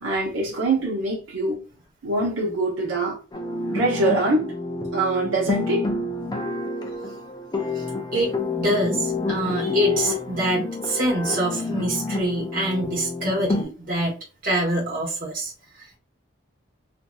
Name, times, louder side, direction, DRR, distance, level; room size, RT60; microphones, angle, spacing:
voice 1, 0.0-1.6 2.0-3.2 3.7-4.5 4.9-5.9, right 2 dB, 80° right, 0.9 m, -23 dB
sound 1, 3.3-13.6, left 3 dB, 20° left, 0.4 m, -29 dB
voice 2, 8.1-14.2 14.4-16.0, right 1 dB, 40° right, 1.3 m, -25 dB
2.6 x 2.6 x 2.3 m
head